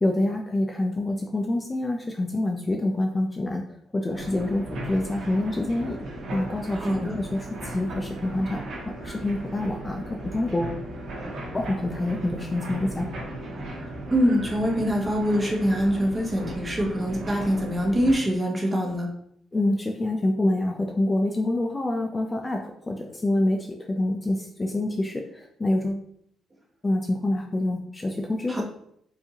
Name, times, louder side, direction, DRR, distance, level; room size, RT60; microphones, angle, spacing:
voice 1, 0.0-3.7 3.9-6.0 6.3-8.6 9.0-10.8 11.5-13.1 19.5-26.1 26.8-28.6, left 1 dB, 20° left, 2 dB, 0.4 m, -26 dB
sound 1, 4.1-18.1, right 1 dB, 70° right, 1.3 m, -36 dB
voice 2, 6.7-7.2 13.8-19.1 28.5-28.6, equal, 20° right, 1 dB, 1.0 m, -24 dB
4.7 x 2.7 x 2.9 m, 0.70 s
cardioid pair, 90°, 0 cm